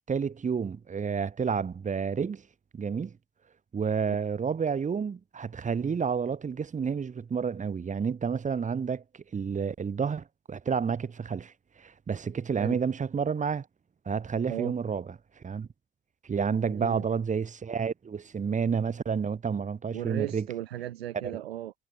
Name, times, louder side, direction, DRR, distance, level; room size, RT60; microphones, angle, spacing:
voice 1, 0.1-2.4 2.7-3.2 3.7-11.5 11.8-13.7 14.1-15.0 15.4-15.7 16.3-20.5, right 6 dB, 25° right, 1.9 m, -30 dB
voice 2, 16.6-17.0 19.9-21.7, right 13 dB, 70° right, 1.2 m, -36 dB
figure-of-eight pair, 60°, 31 cm